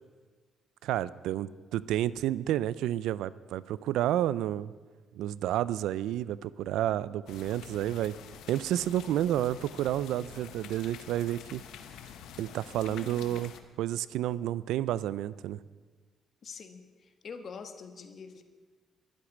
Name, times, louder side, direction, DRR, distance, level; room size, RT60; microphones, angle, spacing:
voice 1, 0.8-4.7 5.1-8.1 8.5-11.6 12.4-13.5 13.8-15.6, right 12 dB, 90° right, 19 dB, 0.4 m, -30 dB
sound 1, 7.3-13.6, left 8 dB, 85° left, 1.0 m, -48 dB
voice 2, 12.9-13.4 16.4-18.4, left 5 dB, 50° left, 8 dB, 1.5 m, -45 dB
12.0 x 8.1 x 9.5 m, 1.4 s
cardioid pair, 90°, 0 cm